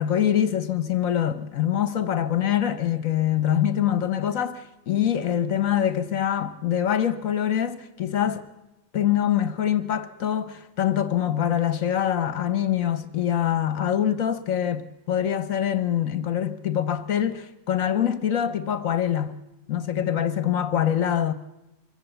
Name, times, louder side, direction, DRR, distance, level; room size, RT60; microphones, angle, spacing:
voice 1, 0.0-8.4 8.9-19.4 19.7-21.3, left 10 dB, 55° left, 1.2 m, -24 dB
23.5 x 15.0 x 8.0 m
omnidirectional pair, 2.0 m